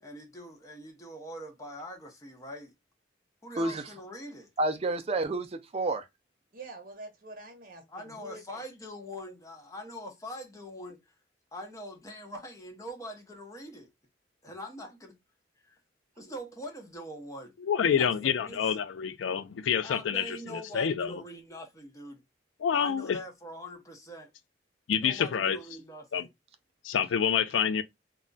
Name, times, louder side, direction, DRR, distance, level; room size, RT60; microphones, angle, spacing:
voice 1, 0.0-2.7 3.4-4.5 7.9-11.0 11.5-13.9 14.4-15.1 15.6-15.8 16.2-17.5 17.8-18.6 19.8-22.2 22.7-24.3 25.0-26.3, equal, 15° left, 0.7 m, -43 dB
voice 2, 3.6-3.9 4.6-6.1, right 2 dB, 35° right, 0.4 m, -29 dB
voice 3, 6.5-8.6, right 2 dB, 50° right, 0.8 m, -46 dB
voice 4, 17.6-21.2 22.6-23.2 24.9-25.6 26.1-26.3 26.8-27.8, left 7 dB, 85° left, 0.4 m, -27 dB
2.3 x 2.1 x 3.7 m
head